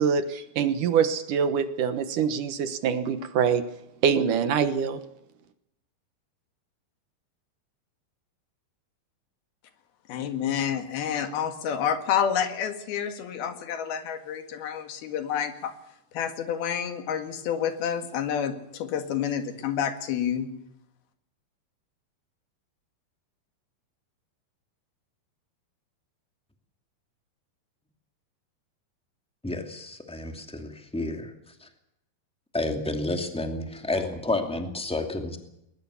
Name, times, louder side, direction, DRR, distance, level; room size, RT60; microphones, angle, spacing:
voice 1, 0.0-3.6 4.0-5.0, right 7 dB, 65° right, 11 dB, 2.5 m, -24 dB
voice 2, 10.1-15.8 16.1-20.5, left 8 dB, 85° left, 8 dB, 3.8 m, -29 dB
voice 3, 29.4-31.3 31.6-31.7 32.5-35.4, left 2 dB, ahead, 5 dB, 1.8 m, -30 dB
21.0 x 20.0 x 7.1 m, 0.81 s
omnidirectional pair, 4.2 m